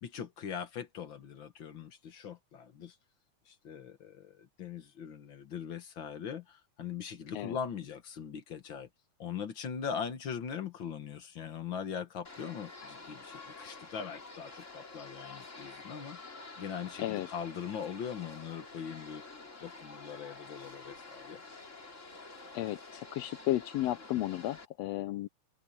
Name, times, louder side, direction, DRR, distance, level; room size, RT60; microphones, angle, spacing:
voice 1, 0.0-2.9 3.5-8.9 9.2-16.2 16.6-19.2 19.6-21.4, left 7 dB, 50° left, 1.7 m, -41 dB
sound 1, 12.2-24.6, left 3 dB, 25° left, 2.8 m, -49 dB
voice 2, 22.5-25.3, left 14 dB, 75° left, 1.5 m, -33 dB
omnidirectional pair, 3.4 m